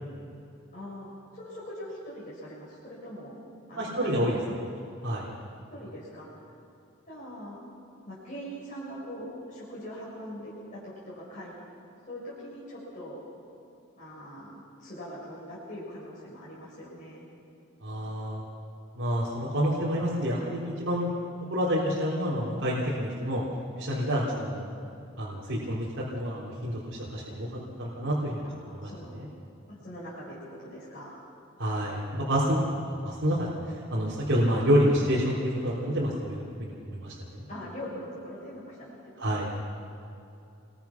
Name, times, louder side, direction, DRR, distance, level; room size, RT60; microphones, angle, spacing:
voice 1, 0.7-3.3 3.7-4.5 5.7-6.3 7.1-7.6 8.1-11.5 12.1-13.2 14.0-17.3 28.4-29.1 29.7-31.2 37.5-39.0 39.2-39.5, equal, 40° left, -8 dB, 6.4 m, -42 dB
voice 2, 3.8-4.4 5.0-5.2 17.8-18.4 19.0-21.1 21.5-23.4 23.8-24.7 25.2-25.9 26.1-28.4 28.7-28.9 29.2-29.3 31.6-32.6 32.8-33.5 33.9-37.1 39.2-39.5, equal, 70° right, -8 dB, 3.7 m, -28 dB
27.5 x 22.0 x 6.0 m, 2.7 s
head